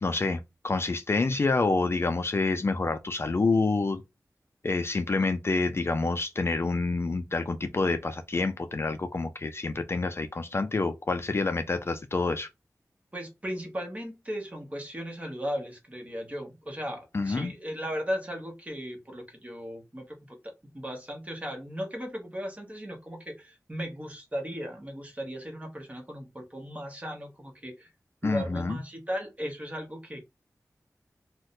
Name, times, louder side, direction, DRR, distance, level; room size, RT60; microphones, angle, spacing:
voice 1, 0.0-4.0 4.6-12.5 17.1-17.5 28.2-28.8, left 3 dB, 45° left, 0.3 m, -27 dB
voice 2, 13.1-20.4 20.6-27.9 28.2-30.2, equal, 25° right, 1.0 m, -36 dB
2.6 x 2.1 x 3.9 m
wide cardioid pair, 85°, 6 cm